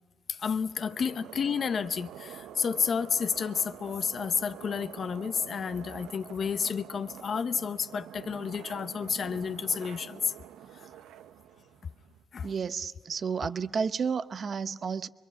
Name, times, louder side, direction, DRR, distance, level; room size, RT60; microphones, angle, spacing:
voice 1, 0.3-10.3 12.3-12.5, left 6 dB, 50° left, 0.8 m, -31 dB
sound 1, 0.7-12.2, right 10 dB, 90° right, 0.8 m, -47 dB
voice 2, 12.4-15.1, right 6 dB, 45° right, 0.8 m, -31 dB
25.0 x 23.0 x 7.3 m
cardioid pair, 90°, 0 cm